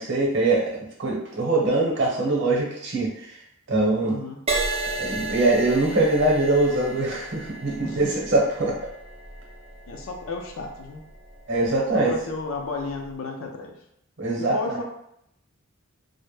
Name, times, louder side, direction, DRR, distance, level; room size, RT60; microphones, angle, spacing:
voice 1, 0.0-3.3 3.7-4.1 4.9-8.7 11.5-12.1 14.2-14.8, right 2 dB, 60° right, -2 dB, 0.8 m, -23 dB
voice 2, 4.0-4.4 7.8-8.1 9.9-11.0 12.1-13.7 14.4-14.8, left 3 dB, 75° left, 2 dB, 0.4 m, -33 dB
Crash cymbal, 4.5-12.1 12.8-13.1, right 2 dB, 30° right, 0.4 m, -33 dB
2.1 x 2.0 x 3.1 m, 0.77 s
head